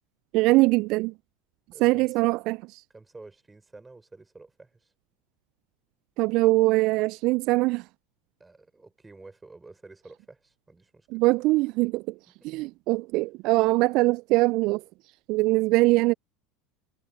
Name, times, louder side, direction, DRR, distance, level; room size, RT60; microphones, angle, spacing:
voice 1, 0.3-1.1 1.8-2.6 6.2-7.8 11.1-12.1 12.4-14.8 15.3-16.1, right 21 dB, 55° right, 0.4 m, -22 dB
voice 2, 1.7-2.3 2.9-4.9 8.4-11.2 12.3-12.5, right 3 dB, 15° right, 6.1 m, -50 dB
hypercardioid pair, 75°, 0 cm